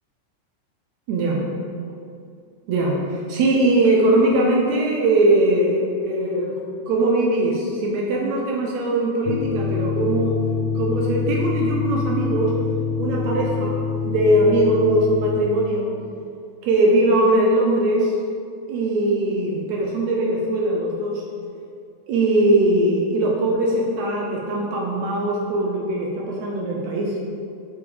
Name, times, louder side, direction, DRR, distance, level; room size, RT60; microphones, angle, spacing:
voice 1, 1.1-1.5 2.7-6.5 6.9-10.4 10.8-12.5 13.0-15.9 16.6-18.1 18.7-21.2 22.1-27.1, right 1 dB, 70° right, -1 dB, 1.9 m, -20 dB
sound 1, 9.3-15.4, left 5 dB, 80° left, 1.6 m, -25 dB
7.0 x 5.1 x 4.9 m, 2.4 s
omnidirectional pair, 3.6 m